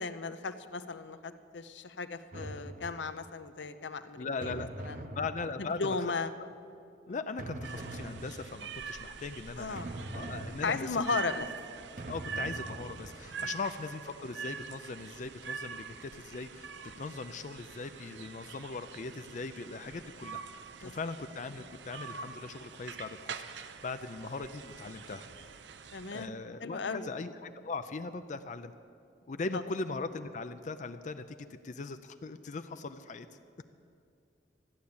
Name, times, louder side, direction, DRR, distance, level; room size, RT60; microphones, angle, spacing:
voice 1, 0.0-4.5 4.8-5.0 5.6-6.3 7.1-7.2 9.6-10.2 10.6-11.5 12.0-12.1 13.4-13.5 20.8-20.9 25.9-27.1 29.5-29.6, left 4 dB, 75° left, 11 dB, 0.7 m, -36 dB
sound 1, 2.3-3.3 4.4-6.0 7.4-8.8 9.8-11.2 12.0-13.4, right 2 dB, 45° right, 0.8 m, -43 dB
voice 2, 4.2-4.7 5.1-6.0 6.4-6.5 7.1-9.8 10.1-11.0 12.1-20.4 20.8-25.3 26.1-28.7 29.3-31.4 31.6-33.3, left 3 dB, 40° left, 10 dB, 0.4 m, -39 dB
sound 2, 7.6-26.3, right 6 dB, 75° right, 0.6 m, -44 dB
13.5 x 9.4 x 8.6 m, 2.5 s
head